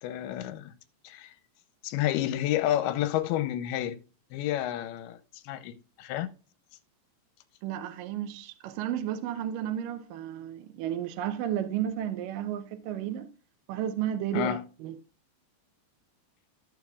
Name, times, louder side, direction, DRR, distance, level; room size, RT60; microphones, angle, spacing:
voice 1, 0.0-0.7 1.0-1.3 1.8-4.0 4.3-5.2 5.4-5.7 6.0-6.3 14.3-14.6, left 12 dB, 80° left, 2.6 m, -29 dB
voice 2, 7.6-13.3 13.7-15.0, right 10 dB, 75° right, 2.0 m, -33 dB
14.0 x 6.9 x 2.3 m
omnidirectional pair, 4.7 m